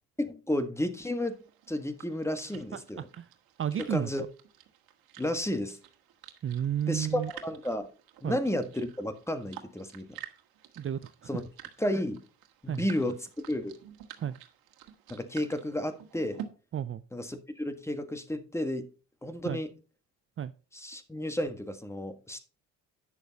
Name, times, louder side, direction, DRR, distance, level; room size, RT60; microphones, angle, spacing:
voice 1, 0.2-1.3 1.7-3.1 3.8-4.2 5.2-5.8 6.9-7.9 8.2-10.2 11.3-11.4 11.8-12.2 12.6-13.8 15.1-16.4 17.1-18.9 19.2-19.7 20.7-22.4, left 1 dB, 5° left, 1.5 m, -32 dB
sound 1, 1.2-16.5, right 11 dB, 75° right, 1.6 m, -50 dB
voice 2, 3.6-4.1 6.4-7.3 8.2-8.4 10.8-11.3 12.7-12.9 14.2-14.4 16.7-17.0 19.4-19.6 20.4-20.5, right 9 dB, 35° right, 0.5 m, -32 dB
10.0 x 6.7 x 4.0 m
cardioid pair, 90°, 36 cm